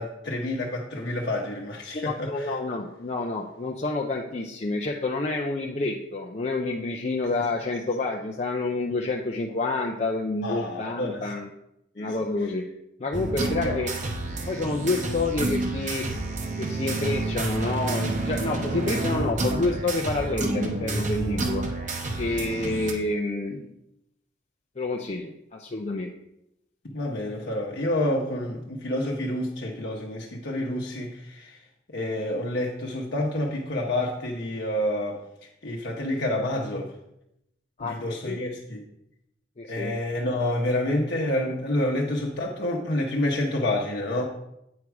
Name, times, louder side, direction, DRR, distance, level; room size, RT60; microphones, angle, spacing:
voice 1, 0.0-2.6 10.4-11.3 12.0-12.1 13.6-13.8 26.8-31.6 31.9-35.2 35.6-36.9 37.8-38.8 39.7-44.2, left 1 dB, 60° left, -2 dB, 0.9 m, -28 dB
voice 2, 1.9-11.5 12.0-12.6 13.0-13.9 14.5-16.0 16.6-21.6 22.2-23.7 24.8-26.1 37.8-38.0 38.2-38.4 39.6-39.9, left 2 dB, 35° left, 1 dB, 0.5 m, -28 dB
sound 1, 13.1-22.9, right 2 dB, 40° right, 0.9 m, -29 dB
8.2 x 4.8 x 4.7 m, 0.82 s
head